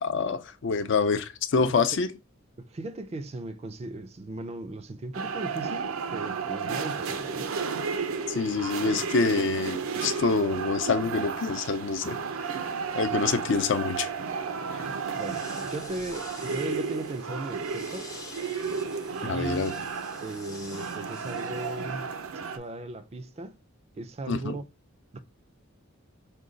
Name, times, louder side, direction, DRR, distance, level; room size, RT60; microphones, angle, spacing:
voice 1, 0.0-2.1 8.3-12.2 12.9-14.1 14.7-14.8 19.2-19.7 24.3-24.6, left 4 dB, 60° left, 0.4 m, -26 dB
voice 2, 2.6-7.5 15.1-18.1 19.2-19.8 20.2-22.1 22.5-23.6 24.0-24.7 25.1-25.2, right 2 dB, 30° right, 0.4 m, -37 dB
sound 1, 5.1-22.6, right 5 dB, 85° right, 0.5 m, -33 dB
sound 2, 14.9-22.1, left 4 dB, 15° left, 0.6 m, -48 dB
5.0 x 2.2 x 3.7 m
head